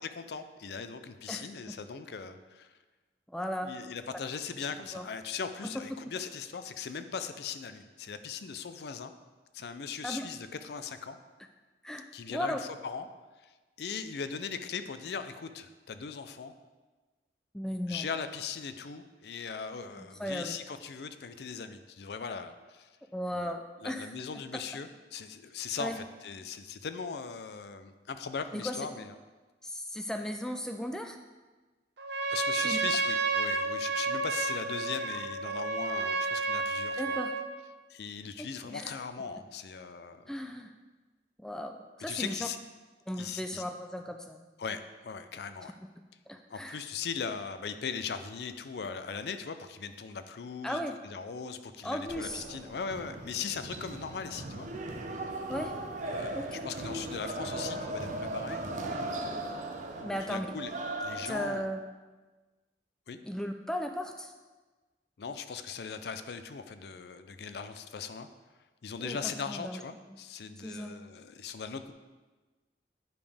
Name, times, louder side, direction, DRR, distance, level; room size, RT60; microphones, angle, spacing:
voice 1, 0.2-2.7 3.6-9.1 9.5-11.2 12.1-13.1 13.4-13.5 13.8-16.5 17.9-22.9 23.3-23.5 23.8-29.2 32.3-37.2 37.9-40.2 42.1-42.6 43.2-43.6 44.6-45.8 46.5-54.7 56.0-58.6 59.9-60.7 61.0-61.6 63.1-63.2 65.2-68.3 68.8-71.9, left 6 dB, 65° left, 10 dB, 0.4 m, -39 dB
voice 2, 1.3-1.7 3.3-3.7 4.9-5.1 5.6-6.0 10.0-10.3 11.8-12.6 17.5-18.1 20.0-20.6 23.1-24.1 24.5-24.6 25.8-26.0 28.5-28.9 29.6-31.2 32.5-32.8 37.0-37.4 38.6-38.9 40.3-40.7 41.4-42.5 43.1-44.4 45.8-45.9 46.3-46.8 50.6-51.0 51.8-52.5 55.5-55.7 56.3-56.5 60.0-60.5 61.1-61.8 63.2-64.3 69.0-69.2 69.5-69.8 70.1-70.2 70.6-70.9, equal, 5° left, 5 dB, 0.3 m, -36 dB
Trumpet, 32.0-37.5, right 3 dB, 80° right, 0.7 m, -31 dB
sound 1, 52.1-61.6, right 2 dB, 45° right, 0.6 m, -38 dB
9.2 x 5.1 x 3.4 m, 1.3 s
head